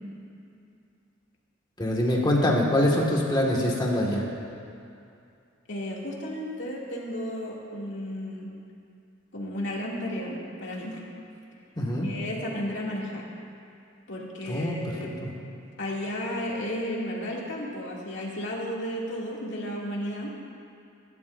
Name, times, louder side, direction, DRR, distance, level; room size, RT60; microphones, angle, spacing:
voice 1, 1.8-4.2 11.8-12.1 14.5-14.8, left 1 dB, 20° left, -3 dB, 1.8 m, -24 dB
voice 2, 5.7-8.5 9.3-11.0 12.0-13.3 14.1-15.2 15.8-20.3, equal, 65° left, -4 dB, 2.5 m, -33 dB
24.0 x 12.5 x 2.6 m, 2.6 s
head